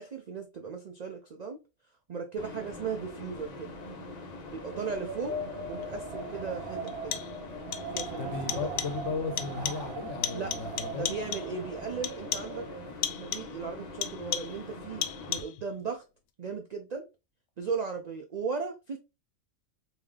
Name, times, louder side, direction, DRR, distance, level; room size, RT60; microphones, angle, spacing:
voice 1, 0.0-1.6 2.1-3.7 4.5-5.4 5.7-7.2 7.9-8.4 8.6-8.7 10.3-12.7 13.1-16.0 16.4-17.1 17.6-19.0, right 5 dB, 75° right, 0.3 m, -37 dB
sound 1, 2.4-15.4, left 2 dB, 40° left, 0.6 m, -43 dB
Wind, 4.5-13.0, right 3 dB, 60° right, 0.8 m, -40 dB
sound 2, 5.8-5.9 6.9-7.4 7.7-8.2 8.5-9.0 9.4-9.9 10.2-11.6 12.0-12.6 13.0-13.6 14.0-14.7 15.0-15.6, left 10 dB, 90° left, 1.0 m, -35 dB
voice 2, 8.1-11.1, left 5 dB, 70° left, 1.0 m, -35 dB
3.6 x 2.7 x 3.2 m
omnidirectional pair, 1.4 m